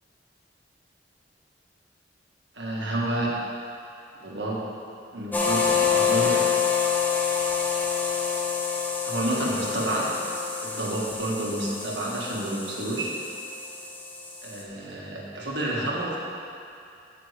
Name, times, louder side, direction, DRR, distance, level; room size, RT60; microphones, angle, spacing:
voice 1, 2.5-3.4 4.2-4.6 5.1-6.4 9.1-10.1 10.6-13.1 14.4-16.2, right 1 dB, 70° right, -4 dB, 1.8 m, -29 dB
sound 1, 5.3-14.6, left 6 dB, 10° left, 0.8 m, -27 dB
14.5 x 5.9 x 3.4 m, 2.5 s
head